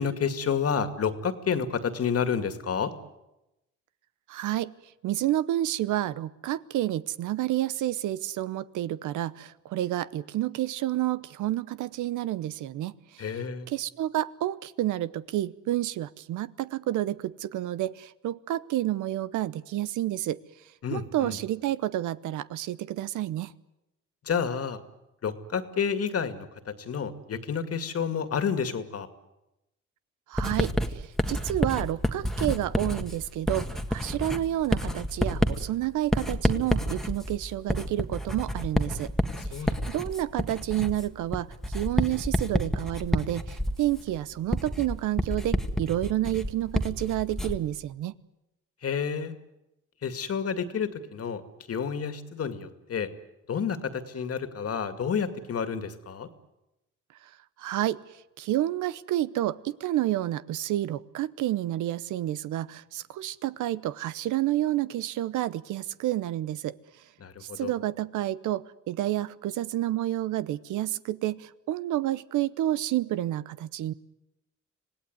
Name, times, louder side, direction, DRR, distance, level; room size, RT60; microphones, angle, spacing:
voice 1, 0.0-2.9 13.2-13.7 20.8-21.4 24.2-24.8 25.2-29.1 39.4-39.8 48.8-49.3 50.0-51.4 51.7-53.1 53.5-56.3 67.2-67.7, left 6 dB, 50° left, 9 dB, 2.2 m, -30 dB
voice 2, 4.3-4.7 5.0-13.2 13.7-20.4 20.9-23.5 30.3-39.1 39.5-39.6 39.9-48.1 57.6-58.0 58.4-66.8 67.4-73.9, right 14 dB, 85° right, 17 dB, 0.9 m, -29 dB
Writing, 30.4-47.7, equal, ahead, 1.7 m, -29 dB
26.0 x 18.0 x 9.6 m, 0.93 s
cardioid pair, 90°, 30 cm